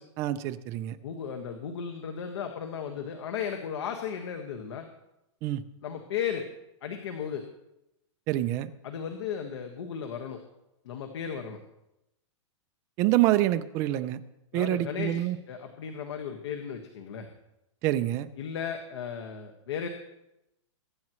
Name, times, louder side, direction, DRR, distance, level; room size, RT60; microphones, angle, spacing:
voice 1, 0.2-1.0 5.4-5.6 8.3-8.7 13.0-14.2 14.5-15.4 17.8-18.3, right 14 dB, 20° right, 11 dB, 0.4 m, -26 dB
voice 2, 1.0-4.9 5.8-6.5 6.8-7.4 8.8-10.4 10.8-11.6 14.5-17.3 18.4-19.9, left 7 dB, 60° left, 4 dB, 1.6 m, -35 dB
23.0 x 10.5 x 3.1 m, 0.89 s
hypercardioid pair, 170°, 16 cm